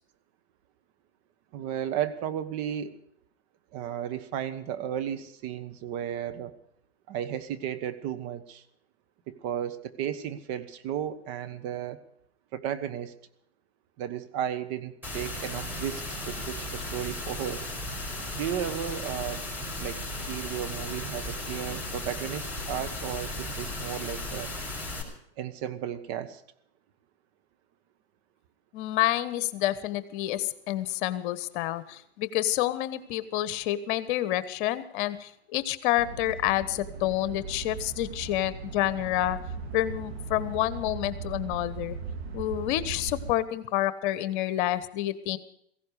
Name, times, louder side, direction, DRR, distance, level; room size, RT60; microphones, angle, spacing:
voice 1, 1.5-2.9 3.7-6.6 7.1-8.6 9.3-12.0 12.5-13.1 14.0-17.6 18.3-19.4 19.8-20.0 20.3-24.5 25.4-26.4, right 10 dB, 45° right, 10 dB, 1.5 m, -34 dB
sound 1, 15.0-25.0, left 1 dB, 5° right, 5.1 m, -36 dB
voice 2, 28.7-39.4 39.7-42.0 42.3-45.4, left 14 dB, 50° left, 15 dB, 1.2 m, -28 dB
sound 2, 36.0-43.3, right 4 dB, 70° right, 3.2 m, -38 dB
17.0 x 16.0 x 4.9 m, 0.71 s
hypercardioid pair, 105°, 33 cm